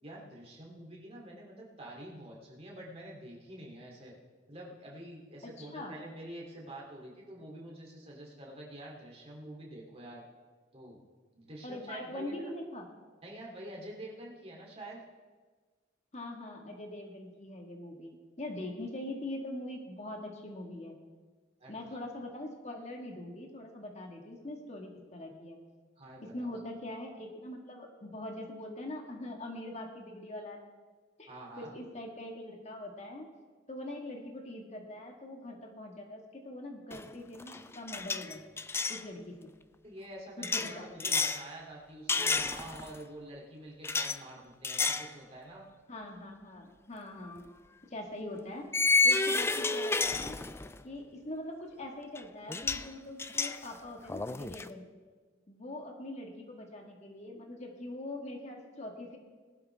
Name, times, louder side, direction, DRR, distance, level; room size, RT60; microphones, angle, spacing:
voice 1, 0.0-4.1 4.5-10.2 10.7-11.0 11.3-12.5 13.2-15.0 21.6-22.0 26.0-26.6 31.3-31.7 39.8-45.7, right 1 dB, 35° right, -2 dB, 2.9 m, -47 dB
voice 2, 5.4-5.9 11.6-12.8 16.1-20.9 21.7-25.6 26.3-30.6 31.2-31.3 31.6-33.3 33.7-38.6 38.9-39.5 40.4-41.2 45.9-47.5 47.9-48.7 49.0-50.4 50.8-54.8 55.5-59.2, left 1 dB, 35° left, 1 dB, 1.7 m, -43 dB
sound 1, 36.9-37.1 37.4-39.0 40.4-41.4 42.1-43.0 43.8-44.2 44.6-45.1 45.6-45.7 47.2-47.4 48.7-50.8 52.2-52.3 52.5-52.9 53.2-54.7, left 3 dB, 15° left, 0.3 m, -30 dB
19.5 x 12.0 x 3.5 m, 1.4 s
head